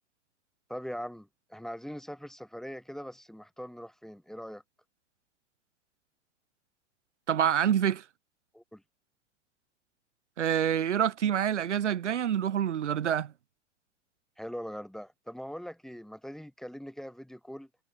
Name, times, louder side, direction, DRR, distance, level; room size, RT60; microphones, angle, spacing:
voice 1, 0.7-4.6 8.5-8.8 14.4-17.7, equal, ahead, 2.0 m, -41 dB
voice 2, 7.3-8.0 10.4-13.3, right 9 dB, 70° right, 1.2 m, -27 dB
figure-of-eight pair, 90°, 37 cm